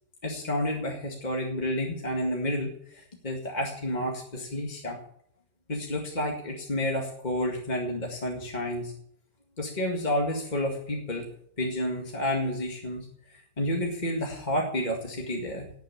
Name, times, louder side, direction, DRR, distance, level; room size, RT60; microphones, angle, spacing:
voice 1, 0.2-5.0 5.7-8.9 9.6-11.3 11.6-15.7, left 1 dB, 25° left, 0 dB, 2.1 m, -30 dB
17.5 x 7.2 x 8.6 m, 0.68 s
omnidirectional pair, 1.7 m